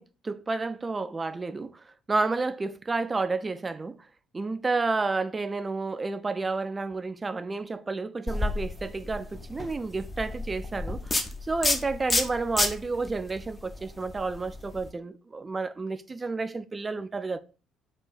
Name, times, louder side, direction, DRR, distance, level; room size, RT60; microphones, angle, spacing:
voice 1, 0.0-4.0 4.3-17.4, right 3 dB, 25° right, 0.3 m, -31 dB
sound 1, 8.3-14.9, left 2 dB, 25° left, 0.6 m, -31 dB
3.5 x 2.5 x 4.2 m
figure-of-eight pair, 50°, 0 cm